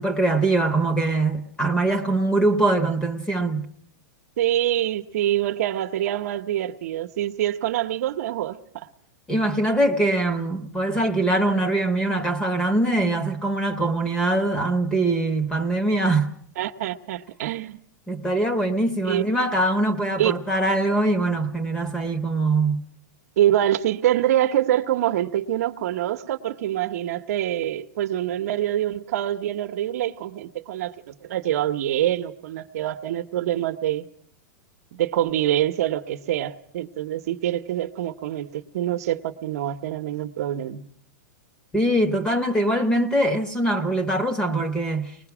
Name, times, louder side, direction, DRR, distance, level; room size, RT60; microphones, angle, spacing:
voice 1, 0.0-3.7 9.3-16.3 18.1-22.8 41.7-45.1, right 2 dB, 10° left, 1.1 m, -22 dB
voice 2, 4.4-8.9 16.6-17.8 19.0-19.2 20.2-20.3 23.4-34.1 34.9-40.8, right 12 dB, 60° right, 0.9 m, -25 dB
23.0 x 20.5 x 6.0 m
supercardioid pair, 160°, 9 cm